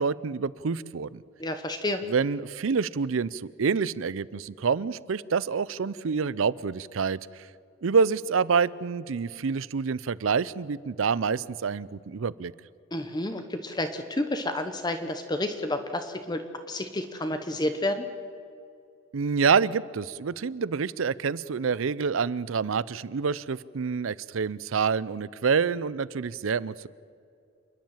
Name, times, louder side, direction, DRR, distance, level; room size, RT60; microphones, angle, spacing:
voice 1, 0.0-1.2 2.0-7.5 7.8-12.5 19.1-26.9, right 5 dB, 75° right, 20 dB, 0.5 m, -27 dB
voice 2, 1.4-2.0 12.9-18.1, left 1 dB, 20° left, 8 dB, 0.9 m, -30 dB
28.0 x 10.5 x 8.9 m, 2.4 s
head